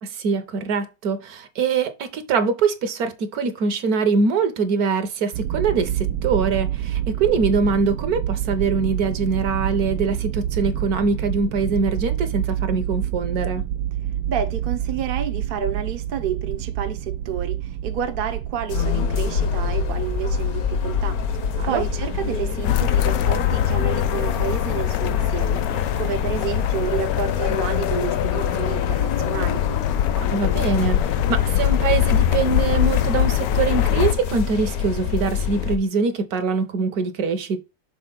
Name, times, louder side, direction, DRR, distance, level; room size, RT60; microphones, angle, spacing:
voice 1, 0.0-13.7 21.6-21.8 30.2-37.6, right 4 dB, 65° right, 1.4 m, -23 dB
sound 1, 5.3-24.6, right 11 dB, 85° right, 1.2 m, -28 dB
voice 2, 14.3-21.2 21.7-25.6 26.0-29.6, right 8 dB, 50° right, 0.7 m, -30 dB
sound 2, 18.7-35.8, left 8 dB, 65° left, 1.2 m, -26 dB
sound 3, 22.6-34.1, left 11 dB, 85° left, 1.3 m, -23 dB
6.6 x 3.7 x 3.8 m
omnidirectional pair, 1.9 m